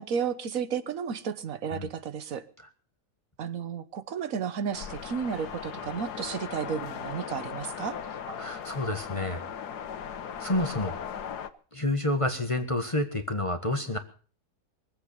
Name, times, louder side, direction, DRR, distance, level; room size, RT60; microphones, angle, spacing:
voice 1, 0.0-2.4 3.4-8.0, right 7 dB, 60° right, 13 dB, 1.5 m, -33 dB
sound 1, 4.7-11.5, left 8 dB, 85° left, 1.6 m, -38 dB
voice 2, 8.3-9.4 10.4-11.0 11.7-14.0, left 1 dB, 20° left, 7 dB, 1.4 m, -29 dB
23.0 x 8.3 x 6.9 m, 0.41 s
omnidirectional pair, 1.7 m